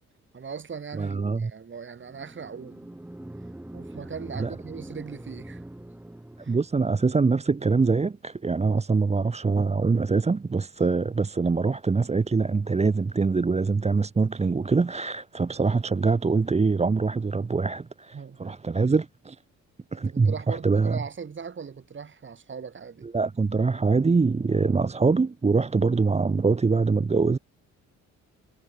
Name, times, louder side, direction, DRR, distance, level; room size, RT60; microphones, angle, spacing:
voice 1, 0.3-3.0 3.7-5.6 6.4-6.6 11.1-11.2 18.1-18.6 19.9-23.1, right 6 dB, 40° right, 4.3 m, -39 dB
voice 2, 0.9-1.5 4.4-4.5 6.5-19.4 19.9-21.0 23.1-27.4, right 4 dB, 20° right, 1.1 m, -24 dB
sound 1, 2.0-6.9, right 1 dB, 5° right, 1.5 m, -43 dB
cardioid pair, 90°, 30 cm